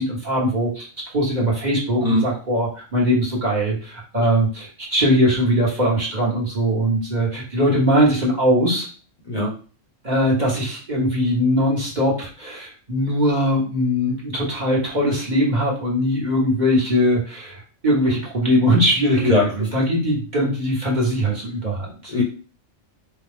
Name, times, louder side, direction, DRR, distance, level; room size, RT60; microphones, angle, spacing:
voice 1, 0.0-8.9 10.0-22.1, equal, 35° right, -4 dB, 1.1 m, -21 dB
voice 2, 19.2-19.7 22.1-22.2, left 2 dB, 35° left, -3 dB, 0.8 m, -20 dB
4.6 x 2.3 x 3.5 m, 0.38 s
omnidirectional pair, 1.4 m